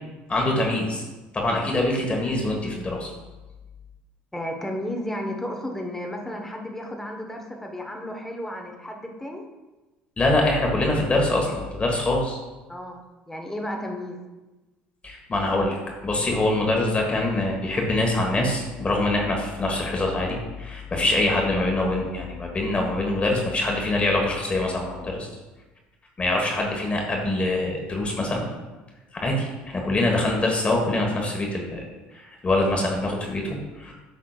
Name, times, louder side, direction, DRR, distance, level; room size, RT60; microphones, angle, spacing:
voice 1, 0.3-1.0 1.3-3.1 10.2-12.4 15.0-15.8 16.0-25.3 26.2-28.4 29.2-31.8 32.1-33.9, left 2 dB, 25° left, 0 dB, 1.5 m, -24 dB
voice 2, 4.3-9.4 12.7-13.0 13.3-14.2, left 1 dB, 10° left, 2 dB, 1.2 m, -33 dB
8.6 x 6.0 x 2.4 m, 1.1 s
hypercardioid pair, 70°, 4 cm